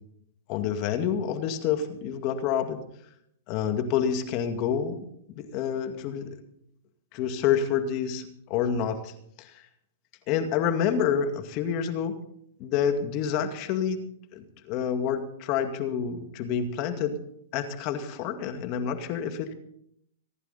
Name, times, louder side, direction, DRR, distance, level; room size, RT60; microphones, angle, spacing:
voice 1, 0.5-2.8 3.5-5.0 5.4-6.4 7.1-9.1 9.4-9.6 10.3-12.2 12.6-14.0 14.3-17.2 17.5-19.5, left 8 dB, 40° left, 7 dB, 2.3 m, -28 dB
26.5 x 11.0 x 4.2 m, 0.71 s
hypercardioid pair, 125°, 0 cm